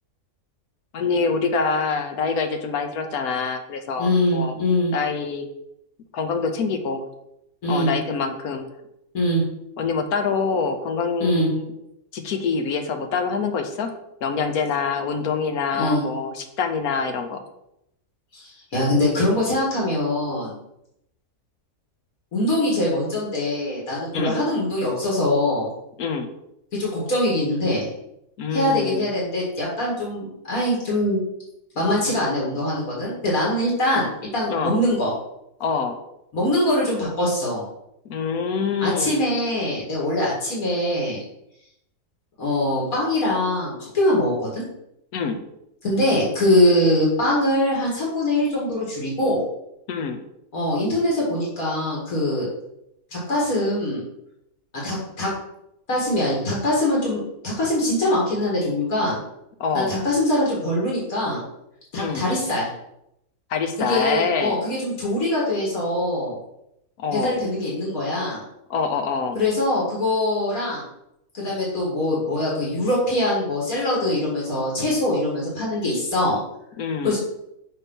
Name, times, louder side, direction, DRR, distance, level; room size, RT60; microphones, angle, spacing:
voice 1, 0.9-4.5 4.9-5.5 6.1-7.1 7.7-8.7 9.8-11.7 12.1-13.9 14.2-17.4 24.1-24.3 26.0-26.3 28.4-29.1 34.5-34.8 35.6-36.0 38.0-39.2 45.1-45.4 49.9-50.2 59.6-59.9 61.9-62.2 63.5-64.6 67.0-67.4 68.7-69.4 76.8-77.2, left 5 dB, 85° left, 6 dB, 1.3 m, -25 dB
voice 2, 4.0-4.9 7.6-7.9 9.1-9.4 11.2-11.5 15.7-16.0 18.3-20.6 22.3-25.7 26.8-27.9 28.5-31.2 31.8-34.1 34.3-35.1 36.3-37.6 38.8-41.2 42.4-44.6 45.8-49.4 50.5-52.5 53.1-54.0 54.7-55.3 55.9-59.2 59.7-61.4 61.9-62.7 63.8-66.4 67.1-68.4 69.3-70.8 71.3-76.4 77.0-77.2, left 1 dB, 70° left, -5 dB, 2.5 m, -23 dB
5.6 x 4.2 x 5.3 m, 0.81 s
omnidirectional pair, 1.5 m